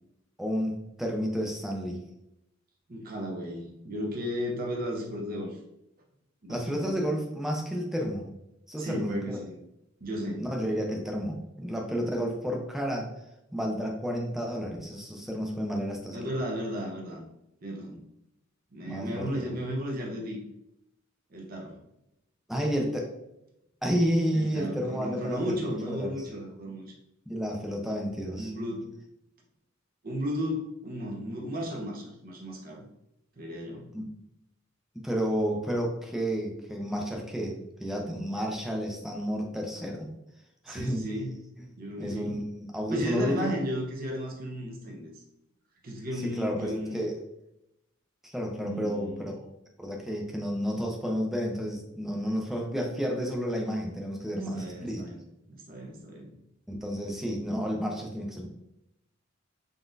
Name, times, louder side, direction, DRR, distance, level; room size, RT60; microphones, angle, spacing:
voice 1, 0.4-2.0 6.5-8.3 8.7-9.4 10.4-13.1 13.5-16.2 18.9-19.3 22.5-23.1 23.8-25.6 25.8-26.2 27.3-28.5 33.9-34.1 34.9-37.5 37.8-40.1 40.6-41.0 42.0-43.5 46.2-47.2 48.2-49.5 49.8-55.0 56.7-58.5, equal, ahead, 0 dB, 0.6 m, -31 dB
voice 2, 2.9-5.6 6.4-7.1 8.8-9.6 10.0-10.5 16.1-17.2 17.6-18.0 18.7-20.4 21.3-21.8 24.3-26.9 28.3-28.9 30.0-32.8 33.4-33.9 40.7-41.4 41.8-42.3 42.9-45.2 45.8-47.0 48.6-49.3 54.4-55.2 55.5-56.3, equal, 45° right, -1 dB, 0.9 m, -34 dB
3.9 x 3.6 x 2.6 m, 0.84 s
head